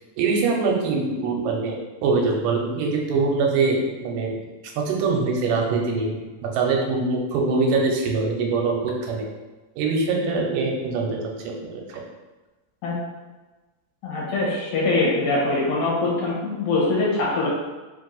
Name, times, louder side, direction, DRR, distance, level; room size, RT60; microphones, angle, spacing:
voice 1, 0.2-4.4 4.8-6.1 6.4-9.3 9.8-11.2 11.6-12.0, right 4 dB, 90° right, 0 dB, 2.3 m, -23 dB
voice 2, 14.0-17.5, left 2 dB, 70° left, -5 dB, 2.2 m, -23 dB
5.1 x 2.7 x 3.8 m, 1.2 s
omnidirectional pair, 3.9 m